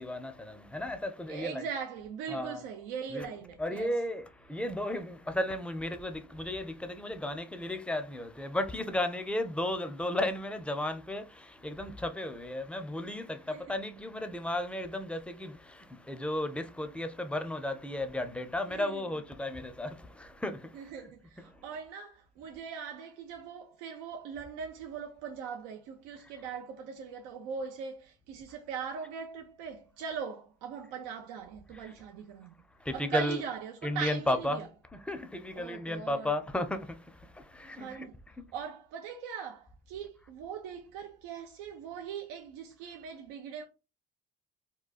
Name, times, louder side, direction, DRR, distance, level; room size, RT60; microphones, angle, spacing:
voice 1, 0.0-1.6 2.3-2.6 3.1-3.3 3.6-20.7 21.5-21.6 31.8-31.9 32.8-33.4 33.8-34.7 35.1-38.1, left 1 dB, 5° left, 0.5 m, -34 dB
voice 2, 1.3-4.0 13.5-13.8 18.7-19.0 20.7-32.5 32.9-34.7 35.5-36.3 37.7-38.2 38.5-43.6, right 6 dB, 90° right, 0.5 m, -40 dB
3.8 x 2.2 x 2.3 m
supercardioid pair, 70°, 33 cm